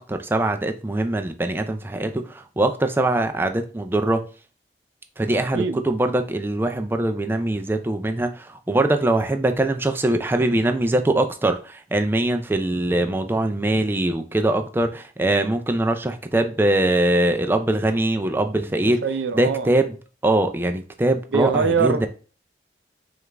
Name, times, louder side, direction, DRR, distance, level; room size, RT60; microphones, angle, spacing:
voice 1, 0.0-4.3 5.2-19.0 19.3-20.0 20.2-22.1, right 1 dB, 10° right, 0.3 m, -22 dB
voice 2, 5.3-5.8 19.0-19.7 21.3-22.1, right 5 dB, 90° right, 0.4 m, -23 dB
4.9 x 2.4 x 3.3 m
head